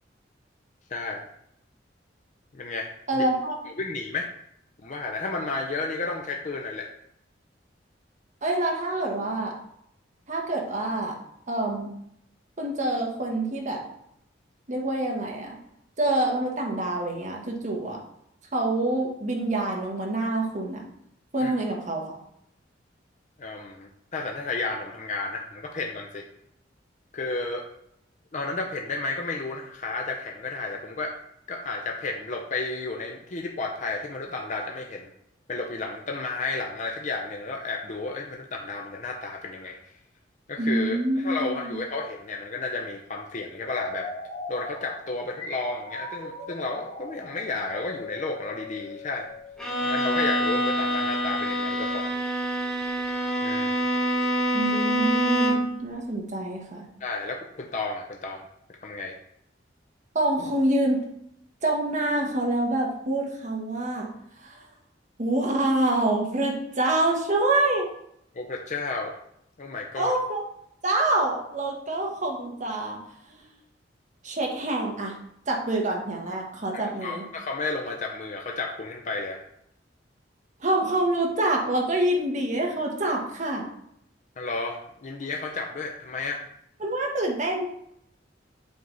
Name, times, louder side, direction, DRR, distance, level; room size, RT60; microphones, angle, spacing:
voice 1, 0.9-1.3 2.5-3.3 3.7-4.3 4.8-6.9 21.4-21.5 23.4-26.3 27.1-27.7 28.3-31.1 31.5-35.1 35.5-39.8 40.5-44.1 44.5-49.3 49.8-52.1 53.4-53.7 57.0-58.5 58.8-59.1 68.3-69.2 69.6-70.1 76.7-79.4 84.4-86.4, left 3 dB, 40° left, 1 dB, 0.6 m, -32 dB
voice 2, 3.1-3.5 8.4-9.5 10.3-11.1 11.5-11.9 12.6-13.8 14.7-15.6 16.0-18.0 18.5-20.8 21.3-22.2 40.6-41.8 54.5-56.9 60.1-61.0 61.6-64.1 64.5-64.6 65.2-67.9 70.0-70.4 70.8-73.0 73.3-73.5 74.2-75.1 75.5-77.2 80.6-83.7 86.8-87.6, right 2 dB, 40° right, 0 dB, 1.3 m, -26 dB
sound 1, 43.6-50.3, left 2 dB, 90° left, 2.3 m, -39 dB
Bowed string instrument, 49.6-55.8, equal, 5° left, 1.0 m, -26 dB
7.7 x 3.4 x 4.0 m, 0.73 s
head